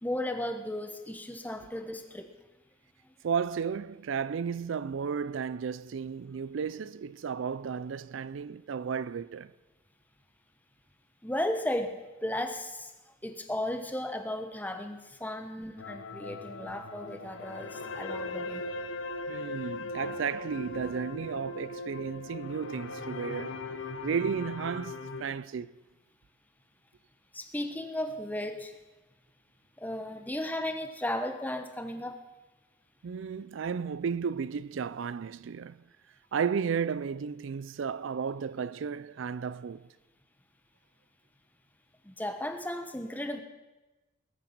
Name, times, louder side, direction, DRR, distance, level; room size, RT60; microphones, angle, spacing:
voice 1, 0.0-2.3 11.2-12.9 13.2-18.7 27.3-28.7 29.8-32.2 42.0-43.4, left 1 dB, 10° left, 1.0 m, -35 dB
voice 2, 3.2-9.5 19.3-23.6 24.0-25.7 33.0-35.8 36.3-39.9, right 6 dB, 80° right, 0.4 m, -33 dB
sound 1, 15.8-25.2, left 2 dB, 85° left, 0.9 m, -39 dB
20.0 x 9.0 x 6.0 m
head